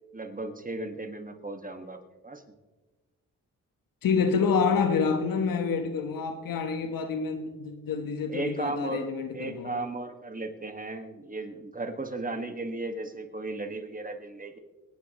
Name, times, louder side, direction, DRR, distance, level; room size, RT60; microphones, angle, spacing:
voice 1, 0.1-2.4 8.3-14.6, right 2 dB, 25° right, 1.9 m, -36 dB
voice 2, 4.0-9.8, left 5 dB, 75° left, 1.4 m, -27 dB
24.5 x 10.0 x 3.2 m
supercardioid pair, 50°, 34 cm